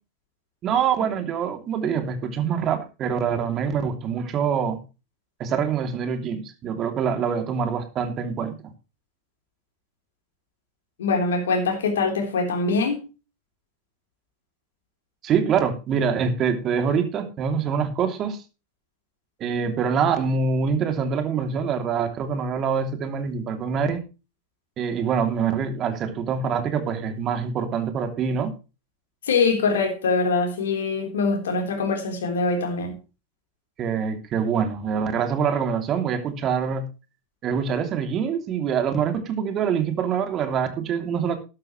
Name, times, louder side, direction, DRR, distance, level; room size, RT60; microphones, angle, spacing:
voice 1, 0.6-4.8 5.4-8.6 15.2-18.4 19.4-24.0 24.8-28.5 33.8-36.8 37.4-41.4, right 6 dB, 35° right, 2.9 m, -25 dB
voice 2, 11.0-13.0 29.3-32.9, left 4 dB, 75° left, 3.8 m, -23 dB
12.5 x 12.0 x 3.2 m
hypercardioid pair, 90°, 0 cm